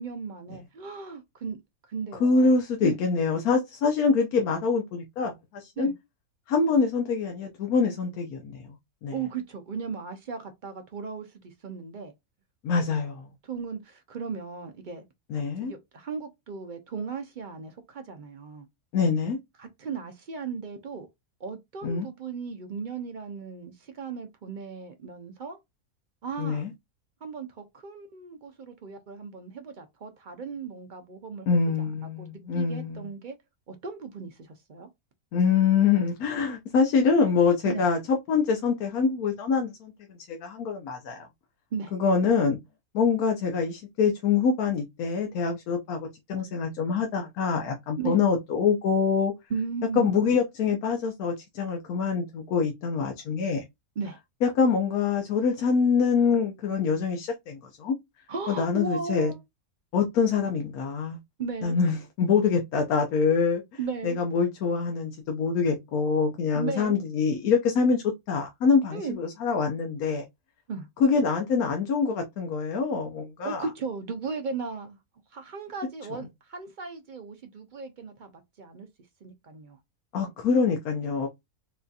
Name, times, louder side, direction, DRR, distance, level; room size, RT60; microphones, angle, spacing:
voice 1, 0.0-1.6 1.9-2.5 2.8-3.0 5.8-5.9 9.1-12.1 13.4-15.0 15.6-18.7 19.6-21.1 21.4-25.6 26.2-26.6 27.2-31.6 32.0-33.4 33.7-34.9 37.6-37.8 41.7-41.9 47.9-48.2 49.5-50.1 54.0-54.2 58.3-59.4 61.4-61.8 63.8-64.2 66.5-67.0 68.9-69.2 70.7-70.9 73.4-75.0 75.3-78.9 79.2-79.8, right 5 dB, 60° right, 0.5 m, -36 dB
voice 2, 2.2-5.9 6.5-8.6 9.0-9.1 12.6-13.3 15.3-15.7 18.9-19.4 21.8-22.1 26.4-26.7 31.5-33.0 35.3-41.3 41.9-42.6 42.9-46.0 46.3-49.3 50.0-53.6 54.4-57.9 58.5-59.3 59.9-61.2 61.6-63.6 64.0-70.2 71.0-73.6 80.1-81.3, left 5 dB, 90° left, 1.2 m, -25 dB
4.1 x 2.6 x 2.3 m
omnidirectional pair, 1.5 m